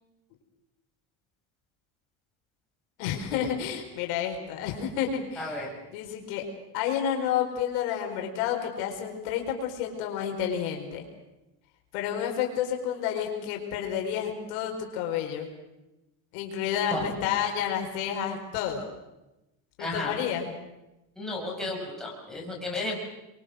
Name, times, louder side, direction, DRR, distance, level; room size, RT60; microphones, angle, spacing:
voice 1, 3.0-5.6 5.9-6.4 6.7-11.0 11.9-15.5 16.3-18.8 19.8-20.6, left 9 dB, 80° left, 2 dB, 4.9 m, -30 dB
voice 2, 5.4-5.7 16.9-17.1 19.8-20.2 21.2-23.0, left 2 dB, ahead, -3 dB, 6.0 m, -33 dB
27.0 x 23.0 x 6.5 m, 0.97 s
cardioid pair, 155°, 43 cm